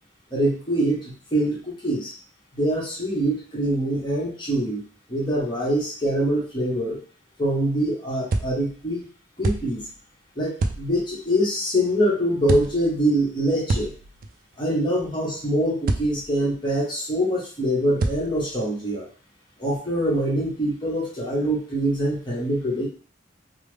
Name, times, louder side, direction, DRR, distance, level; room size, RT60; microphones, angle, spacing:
voice 1, 0.3-2.1 2.5-4.8 5.1-7.0 7.4-9.0 9.4-9.8 10.4-13.9 14.6-19.0 19.6-22.9, right 1 dB, 25° left, -5 dB, 1.0 m, -24 dB
sound 1, 8.3-8.9 9.4-10.0 10.6-11.2 12.4-13.0 13.7-14.6 15.9-16.4 18.0-18.6, right 3 dB, 45° right, 0.3 m, -28 dB
3.2 x 2.0 x 3.2 m, 0.41 s
head